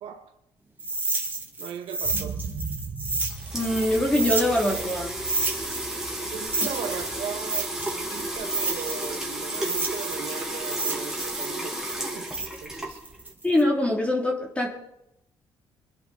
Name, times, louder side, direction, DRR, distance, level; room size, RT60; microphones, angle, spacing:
voice 1, 0.0-0.3 1.6-2.4 6.3-11.9 12.2-12.3 12.6-13.0, right 8 dB, 85° right, 2.2 m, -37 dB
sound 1, 0.8-5.0 5.2-9.2 9.5-13.6, right 3 dB, 20° right, 3.2 m, -30 dB
sound 2, 2.0-9.9 10.3-10.4, right 5 dB, 50° right, 2.1 m, -40 dB
sound 3, 3.0-13.3, right 1 dB, 5° right, 3.8 m, -33 dB
voice 2, 3.5-5.1 13.4-14.7, left 1 dB, 15° left, 3.6 m, -23 dB
25.0 x 11.0 x 4.4 m
cardioid pair, 105°, 9 cm